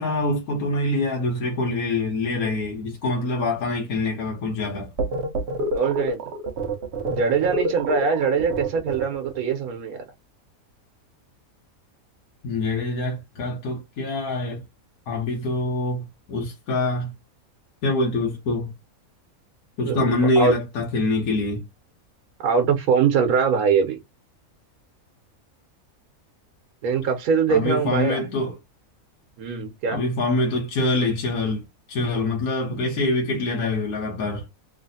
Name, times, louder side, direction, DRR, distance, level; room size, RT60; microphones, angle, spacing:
voice 1, 0.0-4.9 12.4-14.6 15.1-17.1 17.8-18.7 19.8-21.6 27.5-28.6 29.9-31.6 31.9-34.5, left 2 dB, 85° left, 1.4 m, -25 dB
sound 1, 5.0-9.4, right 1 dB, 60° right, 0.8 m, -28 dB
voice 2, 5.7-6.2 7.1-10.0 19.9-20.5 22.4-24.0 26.8-28.2 29.4-30.0, right 6 dB, 85° right, 1.2 m, -22 dB
3.2 x 2.4 x 2.6 m
omnidirectional pair, 1.5 m